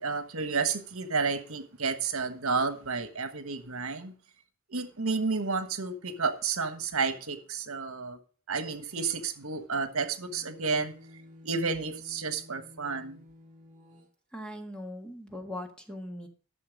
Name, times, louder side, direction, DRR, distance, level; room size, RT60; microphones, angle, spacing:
voice 1, 0.0-4.1 4.7-8.2 8.5-10.9 11.4-13.2, right 4 dB, 70° right, 1.4 m, -31 dB
sound 1, 10.2-14.1, left 2 dB, 35° right, 2.2 m, -52 dB
voice 2, 14.3-16.3, left 1 dB, 5° left, 1.5 m, -40 dB
12.5 x 6.7 x 5.2 m
head